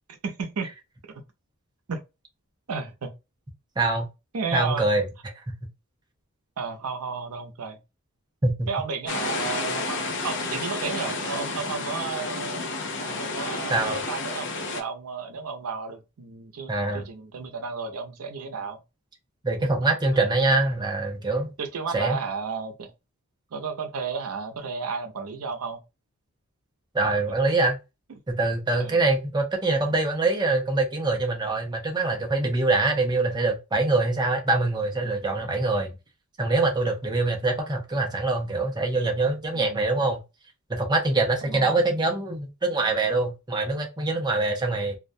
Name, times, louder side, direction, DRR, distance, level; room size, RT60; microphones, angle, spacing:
voice 1, 0.1-0.7 1.9-2.0 2.7-3.1 4.3-4.9 6.6-7.8 8.7-12.6 13.0-18.8 19.6-19.8 21.6-22.9 23.5-25.8 28.8-29.0 39.5-39.8 41.5-41.7, right 5 dB, 90° right, 0.6 m, -33 dB
voice 2, 3.8-4.1 4.5-5.0 8.4-8.7 13.7-14.0 16.7-17.1 19.4-21.5 21.9-22.2 26.9-27.8 28.3-35.9 36.4-40.2 40.7-45.0, right 2 dB, 20° right, 0.5 m, -24 dB
sound 1, 9.1-14.8, left 3 dB, 55° left, 0.5 m, -31 dB
2.3 x 2.1 x 2.6 m
head